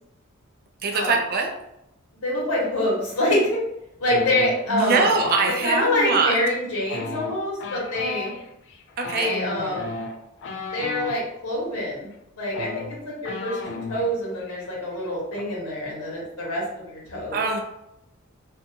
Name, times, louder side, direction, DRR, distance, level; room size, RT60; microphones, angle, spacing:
voice 1, 0.8-1.5 4.7-6.3 9.0-9.3 17.3-17.6, right 4 dB, 45° right, 3 dB, 0.3 m, -22 dB
voice 2, 2.2-3.6 4.0-5.1 5.6-8.3 9.1-10.0 10.7-12.1 12.4-17.4, left 1 dB, 75° left, -4 dB, 1.1 m, -26 dB
sound 1, 4.1-5.6 6.8-11.2 12.1-12.2 12.5-14.1 14.4-14.7 14.9-15.4, left 3 dB, 55° left, 0.3 m, -34 dB
2.6 x 2.2 x 2.7 m, 0.85 s
head